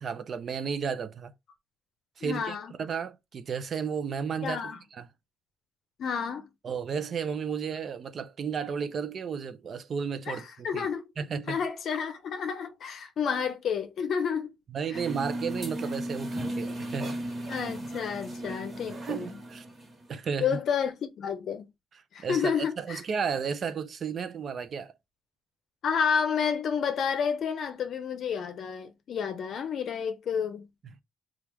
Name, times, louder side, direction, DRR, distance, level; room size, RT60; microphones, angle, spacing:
voice 1, 0.0-1.3 2.2-5.1 6.6-10.9 11.2-11.6 14.7-17.1 18.5-19.7 20.1-20.6 22.2-24.9, right 6 dB, 50° right, 0.5 m, -33 dB
voice 2, 2.2-2.7 4.4-4.8 6.0-6.5 10.3-11.0 11.5-14.5 14.9-15.0 17.5-19.4 20.4-21.7 22.1-23.0 25.8-30.6, left 7 dB, 65° left, 0.6 m, -30 dB
sound 1, 14.9-20.1, right 1 dB, 35° right, 1.3 m, -36 dB
2.9 x 2.4 x 3.4 m
cardioid pair, 90°, 0 cm